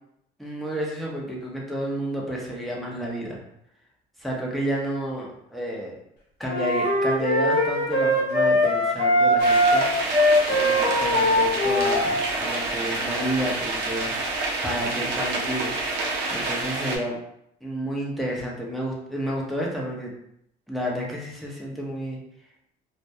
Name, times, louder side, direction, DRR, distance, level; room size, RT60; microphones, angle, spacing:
voice 1, 0.4-3.4 4.2-6.0 6.4-9.8 10.5-14.1 14.6-15.7 16.3-17.2 17.6-20.1 20.7-22.2, equal, ahead, -4 dB, 0.7 m, -30 dB
sound 1, 6.5-12.3, equal, 75° left, 0.7 m, -21 dB
sound 2, 9.4-17.0, right 2 dB, 85° right, 0.6 m, -28 dB
2.2 x 2.1 x 2.7 m, 0.75 s
cardioid pair, 110°, 17 cm